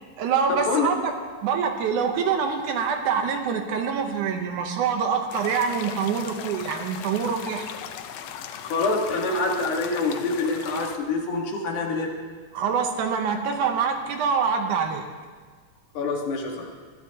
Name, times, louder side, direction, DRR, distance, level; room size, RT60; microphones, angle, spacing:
voice 1, 0.2-1.1 1.4-7.7 12.5-15.1, right 6 dB, 75° right, 5 dB, 2.3 m, -25 dB
sound 1, 5.3-11.0, left 9 dB, 90° left, 1.4 m, -38 dB
voice 2, 8.6-12.1 15.9-16.7, left 3 dB, 70° left, 0 dB, 3.0 m, -26 dB
22.0 x 13.5 x 2.9 m, 1.5 s
omnidirectional pair, 3.8 m